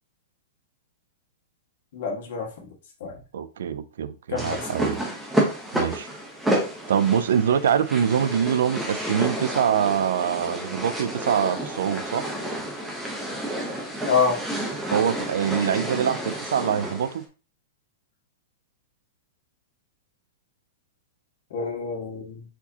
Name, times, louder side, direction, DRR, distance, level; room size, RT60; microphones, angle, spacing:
voice 1, 1.9-2.5 3.0-3.1 4.3-4.6 14.1-14.4 21.5-22.4, left 5 dB, 50° left, 0 dB, 1.6 m, -26 dB
voice 2, 3.3-5.0 5.7-6.1 6.9-12.3 14.9-17.2, right 8 dB, 80° right, 14 dB, 0.4 m, -24 dB
sound 1, 4.4-17.2, right 1 dB, 5° right, 0.7 m, -30 dB
4.2 x 4.2 x 2.8 m, 0.35 s
supercardioid pair, 175°, 0 cm